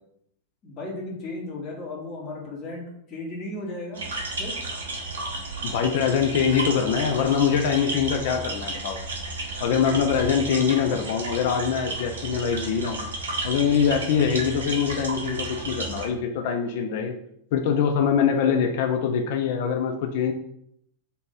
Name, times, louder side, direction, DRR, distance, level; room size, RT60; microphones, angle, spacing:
voice 1, 0.6-4.5, left 2 dB, 35° left, -2 dB, 1.1 m, -35 dB
sound 1, 3.9-16.1, right 2 dB, 65° right, 0.7 m, -33 dB
voice 2, 5.6-9.0 9.6-13.0 13.4-17.1 17.5-20.3, left 7 dB, 50° left, 5 dB, 0.3 m, -23 dB
2.8 x 2.6 x 3.7 m, 0.73 s
figure-of-eight pair, 90°, 0 cm